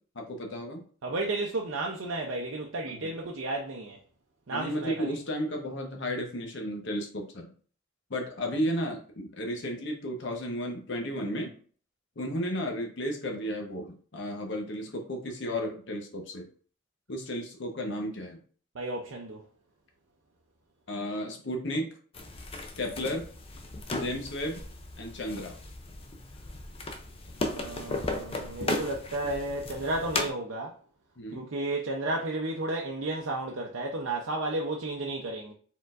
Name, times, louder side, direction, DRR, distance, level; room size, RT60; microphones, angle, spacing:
voice 1, 0.1-0.8 2.9-3.1 4.5-7.5 8.1-11.5 12.2-16.5 17.1-18.4 20.9-21.9 22.8-23.3 24.0-24.6 25.0-25.6 31.2-31.5, equal, 60° left, 0.9 m, -33 dB
voice 2, 1.0-4.0 4.5-5.1 18.7-19.4 27.4-30.8 31.3-35.5, right 2 dB, 80° right, 0.6 m, -33 dB
sound 1, 22.1-30.3, left 2 dB, 30° left, 0.5 m, -36 dB
4.5 x 3.7 x 2.4 m
head